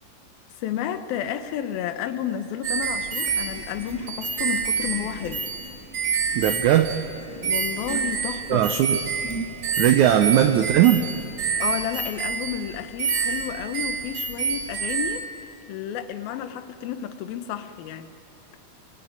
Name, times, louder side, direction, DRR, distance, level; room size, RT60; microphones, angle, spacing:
voice 1, 0.6-5.5 7.4-8.7 11.6-18.1, left 10 dB, 80° left, 10 dB, 2.9 m, -31 dB
sound 1, 2.6-7.2 7.4-15.2, right 5 dB, 55° right, 1.8 m, -28 dB
sound 2, 2.9-11.8, equal, 20° left, 0.6 m, -41 dB
voice 2, 6.3-6.9 8.5-9.0 9.8-11.0, right 11 dB, 75° right, 7 dB, 1.9 m, -18 dB
24.5 x 22.0 x 9.5 m, 2.7 s
omnidirectional pair, 4.2 m